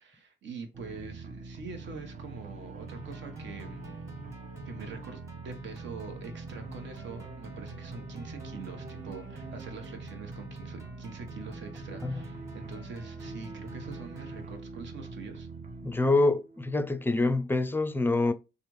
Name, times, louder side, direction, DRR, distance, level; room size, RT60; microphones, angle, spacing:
voice 1, 0.0-4.0 4.6-15.5, right 4 dB, 65° right, 1.1 m, -44 dB
sound 1, 0.7-17.3, right 3 dB, 40° right, 0.7 m, -44 dB
sound 2, 2.9-14.4, equal, 15° right, 1.3 m, -48 dB
voice 2, 15.8-18.3, left 2 dB, 10° left, 0.4 m, -26 dB
3.3 x 2.5 x 3.0 m
cardioid pair, 90°, 20 cm